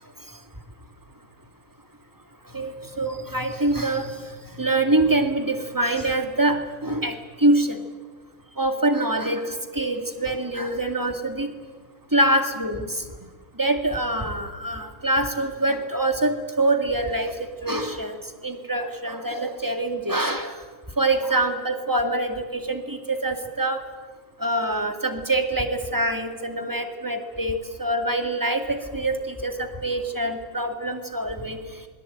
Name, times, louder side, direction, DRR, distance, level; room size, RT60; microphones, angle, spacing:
voice 1, 2.5-4.1 4.6-7.8 8.6-11.5 12.1-12.9 13.6-17.3 17.6-20.5 21.0-23.8 24.4-31.6, right 1 dB, 15° right, 6 dB, 2.1 m, -25 dB
27.5 x 21.5 x 8.8 m, 1.4 s
omnidirectional pair, 1.6 m